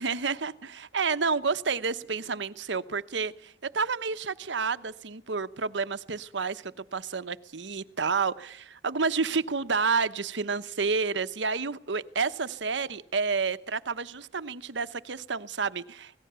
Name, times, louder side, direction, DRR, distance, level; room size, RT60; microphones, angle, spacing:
voice 1, 0.0-16.2, right 5 dB, 75° right, 13 dB, 0.9 m, -30 dB
25.5 x 18.0 x 6.8 m, 0.67 s
head